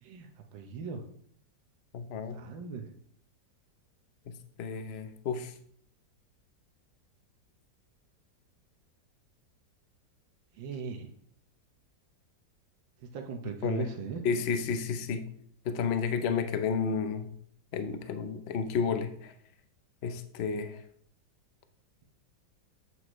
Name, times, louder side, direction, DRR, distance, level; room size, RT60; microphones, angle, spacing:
voice 1, 0.5-1.0 2.3-2.8 10.6-11.1 13.1-14.2, right 6 dB, 85° right, 3 dB, 1.6 m, -38 dB
voice 2, 1.9-2.4 4.6-5.5 13.6-13.9 14.2-15.2 15.7-17.3 17.7-19.1 20.0-20.7, left 6 dB, 65° left, 9 dB, 0.6 m, -31 dB
7.9 x 7.7 x 3.0 m, 0.65 s
omnidirectional pair, 2.0 m